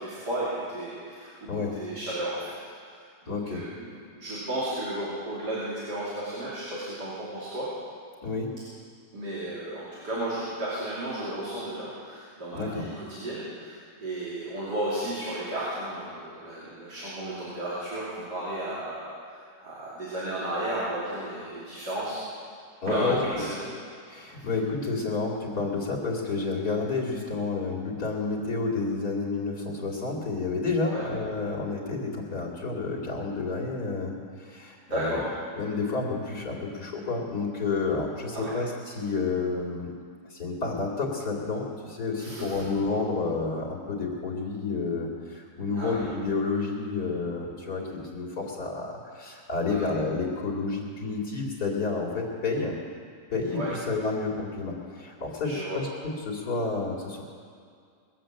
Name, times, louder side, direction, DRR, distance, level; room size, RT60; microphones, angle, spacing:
voice 1, 0.0-2.5 2.8-3.0 3.3-7.7 9.1-22.2 22.9-23.7 24.4-24.5 30.9-31.1 34.9-35.3 38.3-38.5 42.2-42.5 45.7-46.0 49.7-49.9 53.5-53.7 55.4-55.8, right 1 dB, 75° right, -9 dB, 3.7 m, -33 dB
voice 2, 3.3-3.6 8.2-8.5 12.5-12.8 22.8-23.4 24.1-34.1 34.4-35.3 35.5-39.9 40.3-52.7 53.3-55.9 56.3-57.2, left 3 dB, 65° left, -3 dB, 2.8 m, -30 dB
21.0 x 7.8 x 7.6 m, 2.2 s
omnidirectional pair, 1.8 m